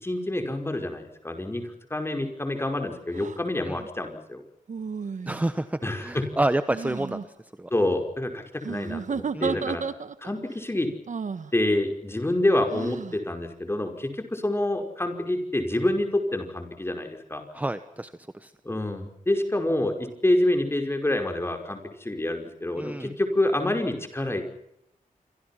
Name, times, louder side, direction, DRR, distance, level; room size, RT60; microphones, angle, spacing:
voice 1, 0.0-4.4 5.8-6.3 7.7-9.8 10.2-10.9 11.5-17.4 18.7-24.4, left 1 dB, 15° left, 5 dB, 5.3 m, -27 dB
sound 1, 3.1-3.4 4.7-5.6 6.7-7.2 8.6-10.3 11.1-11.5 12.7-13.2, right 6 dB, 60° right, 1.5 m, -32 dB
voice 2, 5.3-7.7 9.3-9.7 17.5-18.5 22.8-23.1, right 1 dB, 10° right, 11 dB, 1.1 m, -29 dB
27.5 x 25.0 x 5.9 m, 0.78 s
wide cardioid pair, 110°, 15 cm